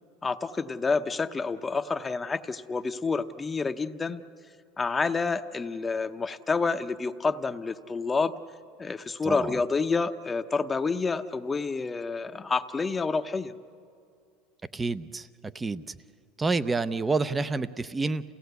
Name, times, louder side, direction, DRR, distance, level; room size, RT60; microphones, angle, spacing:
voice 1, 0.2-4.2 4.8-8.3 8.8-13.5, left 4 dB, 20° left, 10 dB, 0.8 m, -28 dB
voice 2, 9.2-9.5 14.7-15.3 15.5-16.0 16.4-18.2, right 3 dB, 15° right, 15 dB, 0.6 m, -28 dB
28.0 x 17.0 x 8.1 m, 2.4 s
supercardioid pair, 110°, 0 cm